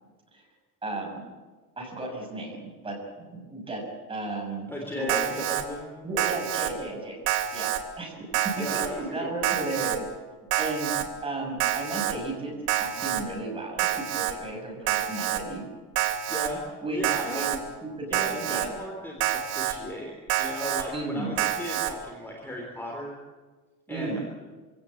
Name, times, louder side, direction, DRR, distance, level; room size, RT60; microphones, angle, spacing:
voice 1, 0.8-1.2 1.8-3.8 4.1-4.7 5.0-5.4 6.0-7.2 7.5-10.0 10.6-15.6 16.8-18.7 20.9-21.4 23.9-24.2, right 2 dB, 15° right, 0 dB, 6.4 m, -34 dB
voice 2, 4.7-5.9 8.6-9.5 16.3-17.6 18.1-20.1 20.4-23.1 23.9-24.2, left 1 dB, 5° left, -1 dB, 3.5 m, -36 dB
Alarm, 5.1-5.6 6.2-6.7 7.3-7.8 8.3-8.9 9.4-10.0 10.5-11.0 11.6-12.1 12.7-13.2 13.8-14.3 14.9-15.4 16.0-16.5 17.0-17.6 18.1-18.7 19.2-19.7 20.3-20.8 21.4-21.9, right 12 dB, 90° right, 3.5 m, -27 dB
25.5 x 17.5 x 8.7 m, 1.3 s
cardioid pair, 170°, 35 cm